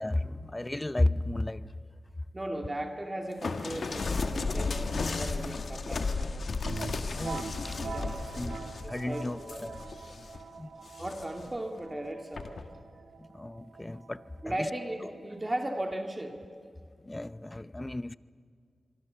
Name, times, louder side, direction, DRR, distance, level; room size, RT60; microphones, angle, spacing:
voice 1, 0.0-1.7 7.1-7.8 8.3-9.8 10.6-10.7 13.2-14.7 15.0-15.1 17.0-18.1, left 1 dB, 20° left, 0.7 m, -33 dB
voice 2, 2.3-6.5 7.7-9.7 11.0-12.6 14.4-16.4, right 1 dB, 25° right, 2.4 m, -37 dB
sound 1, 3.4-10.4 10.9-11.5 12.4-12.7, left 4 dB, 65° left, 1.6 m, -34 dB
sound 2, 6.6-16.2, right 5 dB, 90° right, 1.2 m, -44 dB
26.0 x 23.0 x 6.9 m
cardioid pair, 50°, 0 cm